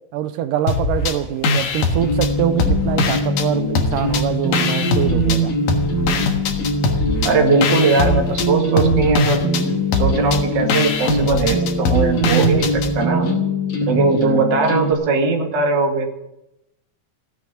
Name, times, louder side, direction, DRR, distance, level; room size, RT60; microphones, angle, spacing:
voice 1, 0.1-5.6, right 11 dB, 85° right, 2.4 m, -24 dB
sound 1, 0.7-1.2 1.4-3.5 3.8-5.4 5.7-12.9, left 3 dB, 90° left, 3.2 m, -21 dB
sound 2, 2.0-14.9, equal, 70° left, 3.9 m, -22 dB
voice 2, 7.2-9.4 9.9-12.7 12.9-13.3 13.8-16.1, right 3 dB, 40° right, 2.3 m, -19 dB
16.0 x 8.4 x 9.5 m
omnidirectional pair, 3.7 m